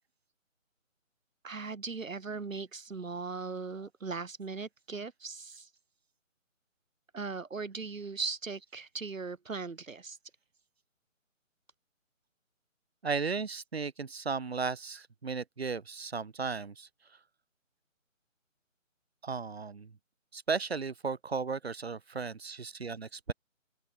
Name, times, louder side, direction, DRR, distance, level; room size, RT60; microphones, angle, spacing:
voice 1, 1.4-5.7 7.1-10.2, right 4 dB, 75° right, 2.8 m, -39 dB
voice 2, 13.0-16.9 19.2-19.9 20.3-23.3, right 5 dB, 50° right, 2.9 m, -35 dB
open air
figure-of-eight pair, 175°, 40 cm